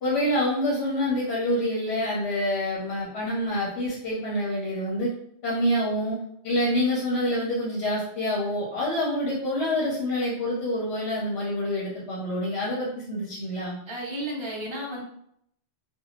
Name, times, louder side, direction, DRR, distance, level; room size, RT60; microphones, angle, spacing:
voice 1, 0.0-5.1 5.4-6.2 6.4-13.8, left 1 dB, 65° left, -6 dB, 1.0 m, -27 dB
voice 2, 13.9-15.0, right 1 dB, 35° right, -2 dB, 0.5 m, -33 dB
2.6 x 2.2 x 2.9 m, 0.71 s
omnidirectional pair, 1.2 m